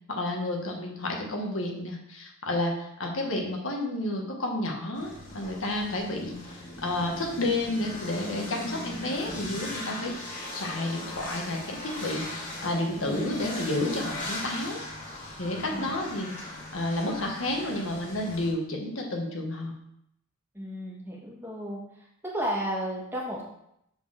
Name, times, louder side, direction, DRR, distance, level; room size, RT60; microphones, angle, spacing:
voice 1, 0.1-10.1 10.5-14.8 15.4-16.3 16.7-19.7, left 1 dB, 70° left, 0 dB, 1.4 m, -31 dB
sound 1, 4.9-18.5, left 1 dB, 40° left, 2.1 m, -39 dB
voice 2, 13.0-13.3 15.7-15.9 20.5-23.4, equal, 10° right, -3 dB, 1.5 m, -33 dB
6.9 x 4.1 x 6.4 m, 0.77 s
head